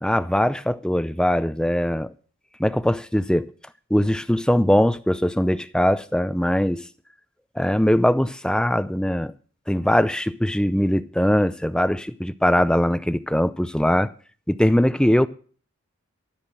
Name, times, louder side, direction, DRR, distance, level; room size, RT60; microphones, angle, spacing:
voice 1, 0.0-2.1 2.6-3.5 3.9-6.8 7.6-9.3 9.7-14.1 14.5-15.3, equal, 5° left, 0.5 m, -21 dB
13.5 x 6.1 x 8.9 m
head